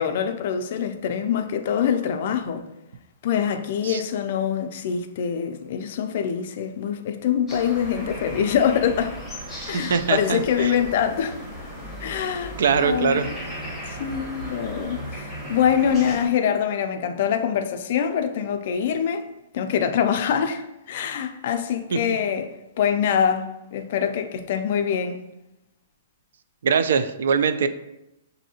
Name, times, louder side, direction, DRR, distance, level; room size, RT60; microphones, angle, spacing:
voice 1, 0.0-2.7 3.2-9.2 9.7-11.4 12.0-13.2 13.9-19.3 19.5-22.5 22.8-25.2, left 8 dB, 45° left, 0.4 m, -24 dB
sound 1, 7.5-16.3, equal, 5° right, 1.0 m, -36 dB
voice 2, 9.7-10.8 12.6-13.3 21.9-22.0 26.6-27.7, right 6 dB, 70° right, 0.3 m, -22 dB
6.1 x 2.6 x 2.8 m
hypercardioid pair, 170°, 0 cm